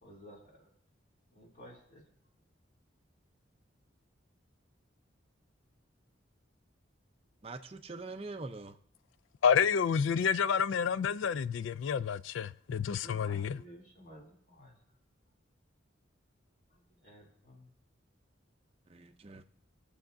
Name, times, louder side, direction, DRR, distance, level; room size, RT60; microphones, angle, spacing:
voice 1, 0.0-0.7 1.3-2.1 13.0-14.8 16.7-17.7, equal, 45° left, 2.8 m, -54 dB
voice 2, 7.4-8.8 18.9-19.4, right 3 dB, 30° right, 0.5 m, -43 dB
voice 3, 9.4-13.6, left 7 dB, 80° left, 0.3 m, -29 dB
19.5 x 7.1 x 2.6 m
head